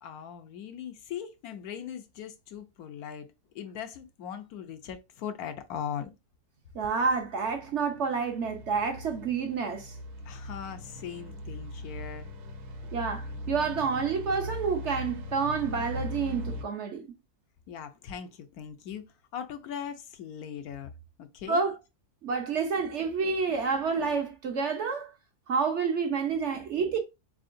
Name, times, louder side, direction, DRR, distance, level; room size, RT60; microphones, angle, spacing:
voice 1, 0.0-6.1 10.2-12.3 17.7-20.9 21.2-21.7, left 8 dB, 75° left, 1.1 m, -40 dB
voice 2, 6.7-9.9 12.9-17.1 21.5-21.7 22.2-25.1 25.5-27.0, right 5 dB, 55° right, 0.9 m, -29 dB
sound 1, 7.0-16.6, left 1 dB, 80° right, 1.3 m, -40 dB
4.1 x 3.8 x 2.5 m
omnidirectional pair, 1.7 m